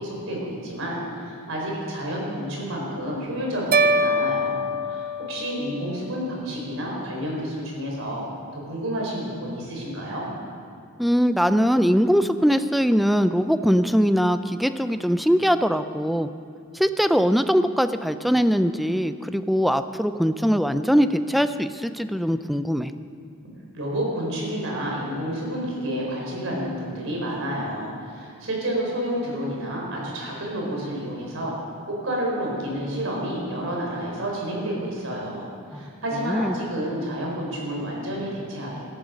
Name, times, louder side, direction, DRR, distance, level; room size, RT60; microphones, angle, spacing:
voice 1, 0.0-8.2 8.5-10.3 23.7-31.5 31.8-38.8, equal, 65° right, -2 dB, 4.6 m, -30 dB
sound 1, 3.7-6.0, right 1 dB, 45° right, 0.6 m, -23 dB
voice 2, 11.0-16.3 16.7-22.9 35.7-35.8 36.2-36.5, equal, ahead, 10 dB, 0.4 m, -21 dB
19.0 x 13.0 x 5.2 m, 2.4 s
head